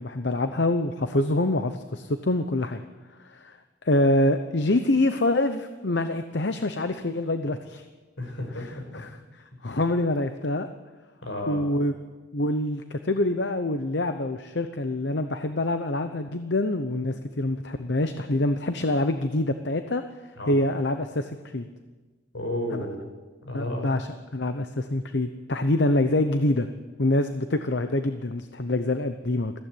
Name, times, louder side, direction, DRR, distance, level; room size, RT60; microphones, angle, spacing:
voice 1, 0.0-2.8 3.2-3.6 3.8-7.8 8.9-9.1 9.6-10.7 11.5-11.9 12.3-20.0 20.5-21.7 22.7-22.9 23.5-26.7 27.0-29.5, left 1 dB, 60° left, 8 dB, 0.9 m, -25 dB
voice 2, 8.2-8.9 11.2-11.6 20.4-20.6 22.3-23.0 23.5-23.9, left 1 dB, 80° left, 3 dB, 5.7 m, -32 dB
21.0 x 15.5 x 9.2 m, 1.3 s
head